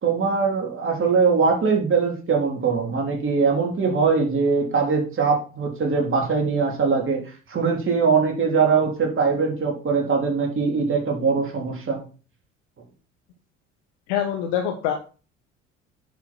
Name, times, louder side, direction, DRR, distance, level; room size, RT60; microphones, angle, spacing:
voice 1, 0.0-7.2 7.5-12.0, right 5 dB, 35° right, 1 dB, 3.9 m, -21 dB
voice 2, 14.1-14.9, left 9 dB, 60° left, 3 dB, 1.5 m, -24 dB
10.5 x 5.9 x 4.6 m, 0.35 s
figure-of-eight pair, 55°, 36 cm